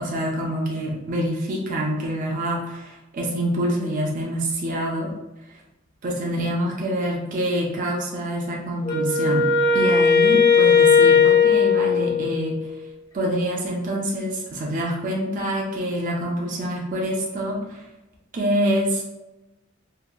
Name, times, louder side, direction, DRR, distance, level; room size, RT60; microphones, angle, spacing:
voice 1, 0.0-5.1 6.0-9.5 9.7-12.6 13.1-17.8 18.3-19.0, equal, 40° right, -2 dB, 0.4 m, -26 dB
Wind instrument woodwind instrument, 8.8-12.7, left 5 dB, 20° left, 0.4 m, -17 dB
2.8 x 2.2 x 2.3 m, 0.99 s
head